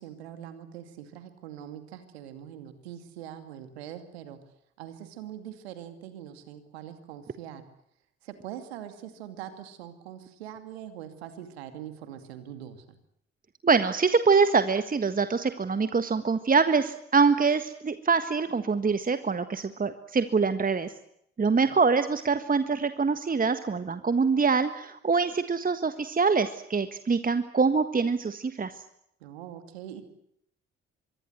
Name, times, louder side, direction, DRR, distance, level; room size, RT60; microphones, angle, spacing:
voice 1, 0.0-4.4 4.8-7.6 8.2-13.0 21.5-21.8 29.2-30.0, right 10 dB, 80° right, 9 dB, 2.5 m, -43 dB
voice 2, 13.6-20.9 21.4-28.7, right 5 dB, 25° right, 10 dB, 1.6 m, -24 dB
25.0 x 23.0 x 8.0 m, 0.74 s
figure-of-eight pair, 45°, 31 cm